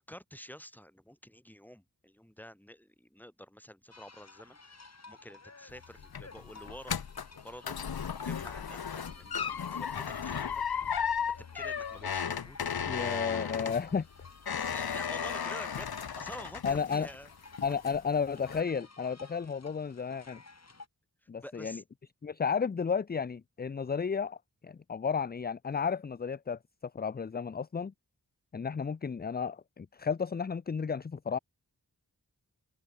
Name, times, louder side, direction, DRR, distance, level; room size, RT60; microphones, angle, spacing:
voice 1, 0.0-4.6 5.1-7.0 7.4-7.8 8.1-10.6 11.5-12.6 14.5-17.3 21.4-21.8, equal, 5° left, 3.4 m, -49 dB
sound 1, 3.9-20.9, left 3 dB, 45° left, 2.5 m, -54 dB
sound 2, 5.7-17.3 17.6-18.1 18.5-18.6, left 7 dB, 80° left, 1.0 m, -35 dB
voice 2, 12.9-14.1 16.6-17.1 17.6-20.4 21.3-21.8 22.2-24.4 24.6-26.6 26.9-27.9 28.5-31.4, left 6 dB, 25° left, 0.4 m, -33 dB
open air
wide cardioid pair, 80°, 37 cm